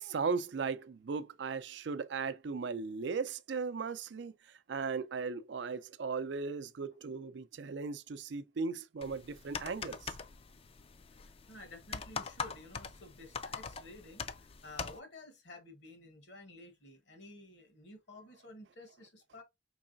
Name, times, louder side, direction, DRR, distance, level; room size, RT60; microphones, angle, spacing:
voice 1, 0.0-10.1, right 5 dB, 75° right, 0.4 m, -37 dB
sound 1, 9.0-15.0, left 5 dB, 30° left, 0.4 m, -43 dB
voice 2, 11.2-19.4, left 2 dB, 70° left, 1.3 m, -52 dB
4.7 x 3.1 x 2.6 m
head